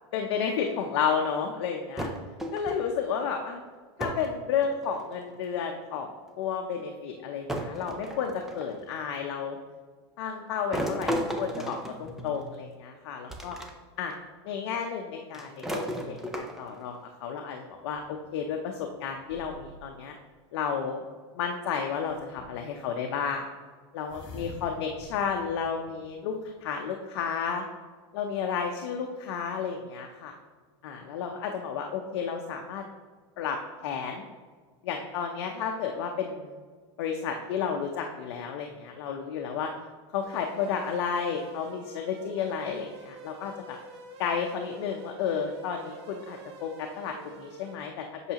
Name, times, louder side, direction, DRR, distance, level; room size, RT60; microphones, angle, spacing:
voice 1, 0.1-2.1 2.5-3.6 4.0-6.1 6.4-9.6 10.2-13.6 14.0-14.1 14.4-17.0 17.2-20.1 20.5-21.0 21.3-23.5 23.9-27.6 28.1-30.3 30.8-32.8 33.4-33.6 33.8-34.2 34.8-36.6 37.0-39.7 40.1-43.8 44.2-48.3, left 6 dB, 60° left, 3 dB, 0.7 m, -32 dB
sound 1, 2.0-2.9 4.0-4.3 4.6-5.2 6.3-6.4 7.5-8.8 10.7-12.6 13.3-13.7 14.1-14.2 15.3-16.8, equal, 5° right, 0.4 m, -34 dB
sound 2, 17.7-20.1 22.1-22.8 24.0-26.5, left 1 dB, 30° left, 1.7 m, -48 dB
sound 3, 40.2-47.8, right 2 dB, 65° right, 1.0 m, -47 dB
8.0 x 5.8 x 2.9 m, 1.5 s
supercardioid pair, 170°, 15 cm